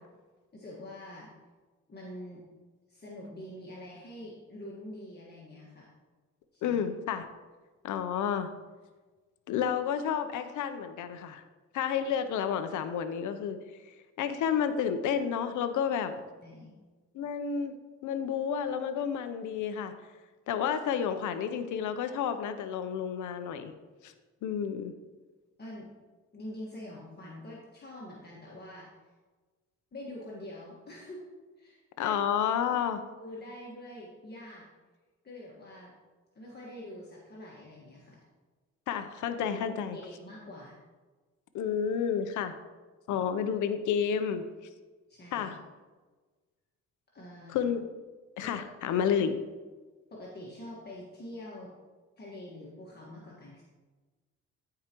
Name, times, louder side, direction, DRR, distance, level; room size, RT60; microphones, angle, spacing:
voice 1, 0.5-1.3 1.9-2.4 2.9-5.9 6.5-6.8 16.4-16.7 25.6-25.9 26.3-28.9 29.9-31.2 31.6-32.5 32.9-34.7 35.2-35.9 36.3-38.2 39.4-39.6 39.9-40.7 45.1-45.5 47.1-47.6 48.4-48.6 50.1-51.7 52.2-53.6, left 1 dB, 35° left, -5 dB, 1.6 m, -45 dB
voice 2, 6.6-7.3 7.8-8.5 9.5-11.4 11.7-13.6 14.2-16.1 17.1-17.7 18.0-19.9 20.5-23.7 24.0-24.1 24.4-24.9 32.0-33.0 38.9-40.0 41.5-42.5 43.1-44.4 45.3-45.6 47.5-47.8 48.4-49.3, left 8 dB, 80° left, 10 dB, 0.7 m, -30 dB
13.5 x 4.9 x 3.0 m, 1.3 s
cardioid pair, 90°, 30 cm